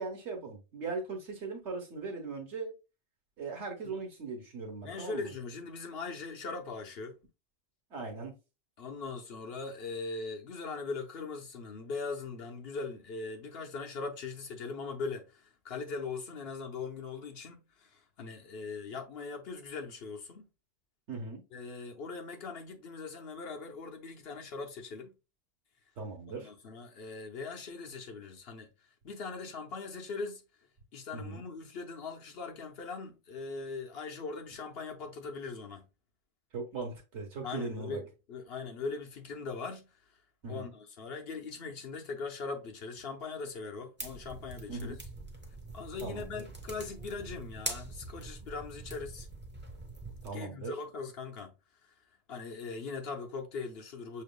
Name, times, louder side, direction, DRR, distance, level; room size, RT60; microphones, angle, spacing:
voice 1, 0.0-2.7 3.4-5.3 7.9-8.3 21.1-21.4 26.0-26.5 31.1-31.5 36.5-38.0 40.4-40.7 44.7-45.0 46.0-46.4 50.2-50.7, right 4 dB, 90° right, 1.4 m, -39 dB
voice 2, 4.8-7.2 8.8-20.5 21.5-25.1 26.3-28.7 29.0-30.4 30.9-35.8 37.4-39.9 40.5-44.9 45.7-49.3 50.3-51.5 51.8-51.9 52.3-54.2, left 4 dB, 65° left, 1.0 m, -40 dB
sound 1, 44.0-50.3, right 2 dB, 10° right, 0.7 m, -43 dB
6.5 x 3.0 x 2.2 m
omnidirectional pair, 1.1 m